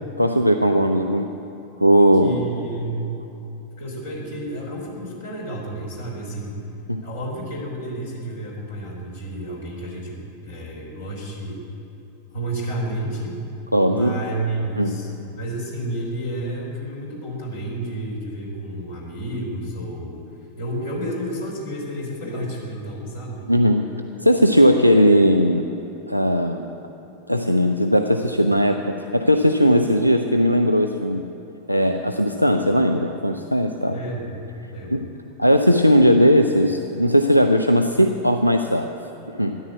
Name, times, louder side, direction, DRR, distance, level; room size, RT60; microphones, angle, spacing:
voice 1, 0.2-1.3 1.8-2.4 6.9-7.0 13.7-14.2 14.8-15.0 23.5-23.9 24.2-25.6 26.1-26.6 27.3-31.2 31.7-34.0 34.9-35.1 35.4-38.9 39.3-39.6, equal, 90° left, 6 dB, 0.5 m, -18 dB
voice 2, 2.2-3.0 3.8-6.6 7.0-11.6 12.3-13.4 13.8-20.2 20.6-23.5 33.9-34.4 34.7-35.0, right 1 dB, 65° left, -3 dB, 3.7 m, -31 dB
13.5 x 10.5 x 8.3 m, 2.9 s
figure-of-eight pair, 90°, 0 cm